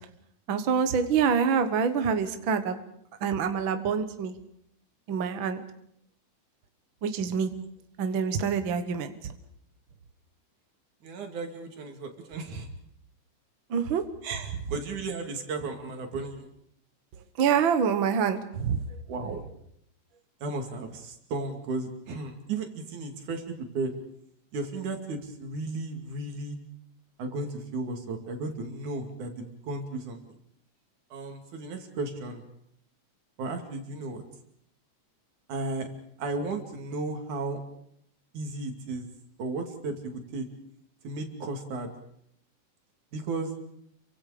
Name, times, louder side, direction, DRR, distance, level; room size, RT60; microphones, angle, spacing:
voice 1, 0.5-2.8 3.2-4.3 5.1-5.6 7.0-7.5 8.0-9.1 13.7-14.0 17.4-18.8, right 6 dB, 50° right, 8 dB, 1.7 m, -26 dB
voice 2, 11.0-12.7 14.2-16.5 19.1-19.4 20.4-23.9 24.5-26.6 27.2-30.2 31.1-32.4 33.4-34.2 35.5-35.9 36.2-37.6 38.3-39.1 39.4-40.5 41.0-41.9 43.1-43.5, right 3 dB, 75° right, 4 dB, 3.9 m, -34 dB
29.0 x 24.0 x 5.1 m, 0.72 s
omnidirectional pair, 3.5 m